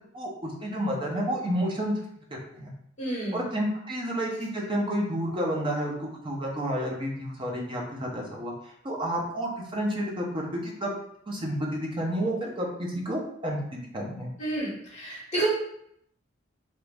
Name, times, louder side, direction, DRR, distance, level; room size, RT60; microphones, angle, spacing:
voice 1, 0.1-1.9 2.5-2.7 3.3-8.5 8.8-10.9 11.3-13.6 13.9-14.3, equal, 25° right, -1 dB, 0.6 m, -30 dB
voice 2, 3.0-3.5 14.4-15.5, right 2 dB, 35° left, -9 dB, 1.2 m, -30 dB
3.0 x 2.4 x 3.3 m, 0.71 s
head